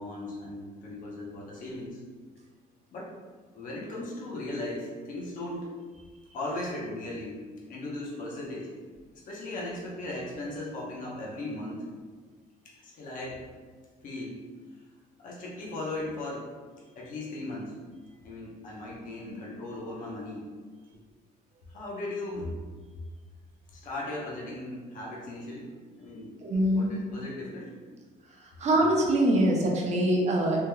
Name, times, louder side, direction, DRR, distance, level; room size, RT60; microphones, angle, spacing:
voice 1, 0.0-2.0 2.9-3.1 3.5-5.7 6.3-7.4 7.7-8.7 9.2-11.9 12.6-13.4 14.0-14.4 15.2-16.5 17.0-17.7 18.2-20.5 21.7-22.5 23.7-25.7 26.0-26.4 26.7-27.7, left 2 dB, 50° left, -4 dB, 0.9 m, -37 dB
voice 2, 26.4-26.9 28.6-30.7, right 1 dB, 40° right, -1 dB, 0.7 m, -24 dB
3.5 x 2.9 x 2.2 m, 1.5 s
cardioid pair, 110°, 17 cm